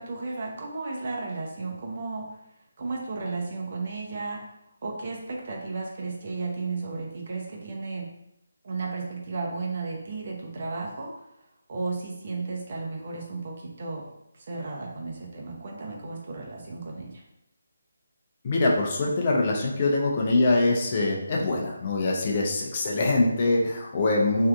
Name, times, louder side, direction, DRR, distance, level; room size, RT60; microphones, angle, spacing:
voice 1, 0.0-2.4 2.8-4.5 4.8-8.1 8.6-11.1 11.7-14.1 14.3-17.2, right 3 dB, 50° right, -1 dB, 0.7 m, -34 dB
voice 2, 18.4-24.5, left 2 dB, 35° left, -1 dB, 0.6 m, -23 dB
3.3 x 2.7 x 2.4 m, 0.82 s
figure-of-eight pair, 150°, 0 cm